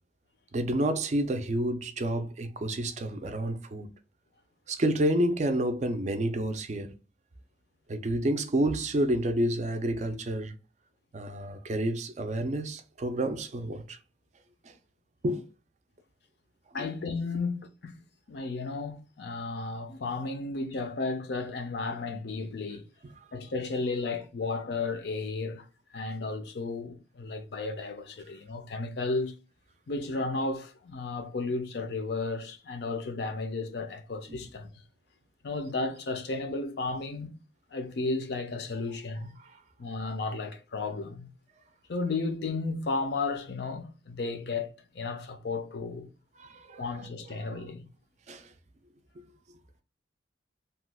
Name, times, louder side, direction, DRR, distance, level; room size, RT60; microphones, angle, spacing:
voice 1, 0.5-3.9 4.7-6.9 7.9-10.5 11.1-14.0 14.6-14.7 15.2-15.4 16.7-16.9 34.3-34.4 39.4-39.5 46.4-46.9 48.3-48.5, right 1 dB, 35° right, 0.4 m, -29 dB
voice 2, 16.7-18.0 18.3-22.8 23.3-25.6 25.9-29.3 29.9-34.7 35.4-37.3 37.7-39.3 39.8-41.3 41.9-44.7 44.9-46.1 46.8-47.8, left 3 dB, 60° left, 0.5 m, -33 dB
2.9 x 2.2 x 3.3 m
head